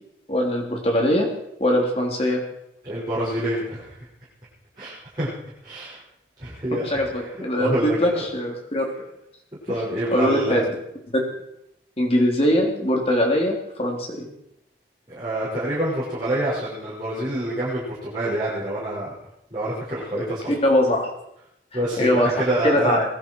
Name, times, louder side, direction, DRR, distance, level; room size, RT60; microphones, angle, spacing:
voice 1, 0.3-1.3 1.6-2.4 6.9-8.9 10.1-10.7 11.1-11.2 12.0-14.3 20.1-20.2 20.6-21.1 22.0-22.3 22.6-23.1, left 1 dB, 35° left, 0 dB, 3.4 m, -21 dB
voice 2, 2.8-4.1 4.8-5.3 5.6-6.0 6.4-7.3 7.6-8.2 9.6-10.6 15.1-19.1 19.5-20.6 21.7-23.0, right 1 dB, 25° right, -11 dB, 5.9 m, -27 dB
21.0 x 12.0 x 4.7 m, 0.79 s
head